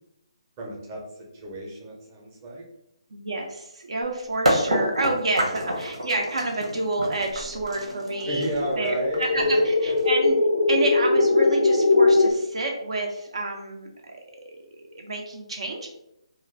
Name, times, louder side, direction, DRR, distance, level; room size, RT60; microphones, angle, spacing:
voice 1, 0.6-2.6 5.4-5.6 8.2-9.9, right 1 dB, 25° right, -2 dB, 0.7 m, -33 dB
voice 2, 3.1-8.4 8.8-10.4 10.7-14.2 14.5-14.6 14.9-15.9, right 2 dB, 65° right, 1 dB, 0.5 m, -29 dB
sound 1, 4.0-4.1 4.4-10.3, right 1 dB, 85° right, 1.0 m, -28 dB
sound 2, 7.2-12.3, left 3 dB, 85° left, 0.4 m, -21 dB
2.4 x 2.2 x 3.2 m, 0.80 s
figure-of-eight pair, 150°, 3 cm